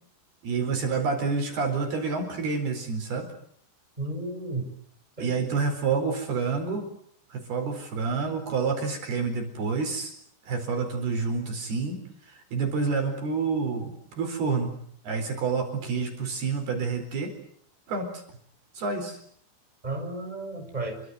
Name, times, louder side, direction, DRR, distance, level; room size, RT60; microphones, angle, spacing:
voice 1, 0.4-3.3 5.2-6.9 7.3-10.1 10.5-12.0 12.3-14.7 15.0-17.3 17.9-18.2 18.8-19.2, right 4 dB, 55° right, 5 dB, 6.0 m, -28 dB
voice 2, 4.0-4.7 5.2-5.3 19.8-21.0, right 2 dB, 10° right, 3 dB, 5.9 m, -33 dB
29.5 x 24.5 x 8.0 m, 0.65 s
omnidirectional pair, 5.6 m